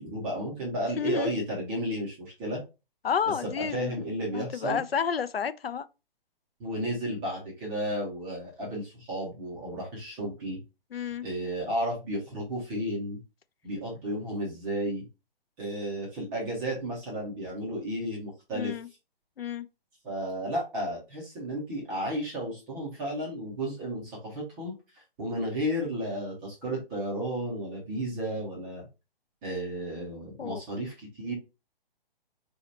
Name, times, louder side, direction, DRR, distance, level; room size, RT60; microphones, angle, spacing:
voice 1, 0.0-2.6 3.4-4.8 6.6-10.6 11.2-13.2 13.6-15.0 15.6-18.8 20.0-24.7 25.2-28.9 29.4-31.3, equal, 5° right, 0.3 m, -33 dB
voice 2, 1.0-1.3 3.0-3.9 4.3-5.9 10.9-11.3 18.5-18.9 19.4-19.7 30.4-30.6, left 7 dB, 85° left, 0.5 m, -30 dB
4.0 x 2.8 x 3.1 m
figure-of-eight pair, 130°, 29 cm